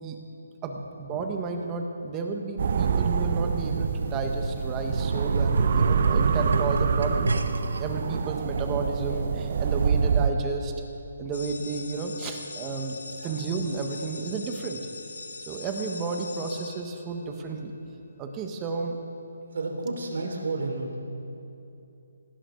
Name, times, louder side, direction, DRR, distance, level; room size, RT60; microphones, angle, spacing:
voice 1, 0.6-7.4 7.7-10.7 11.2-14.8 15.5-17.7 18.2-19.0, right 4 dB, 20° right, 3 dB, 1.4 m, -32 dB
sound 1, 2.6-10.3, right 6 dB, 50° right, 0.7 m, -26 dB
sound 2, 3.4-7.8 8.6-8.7, right 2 dB, 85° right, 1.3 m, -31 dB
sound 3, 11.3-17.5, left 4 dB, 70° left, 1.8 m, -42 dB
voice 2, 19.5-20.9, right 3 dB, 65° right, 1 dB, 3.4 m, -31 dB
19.0 x 17.5 x 3.9 m, 2.7 s
hypercardioid pair, 160°, 0 cm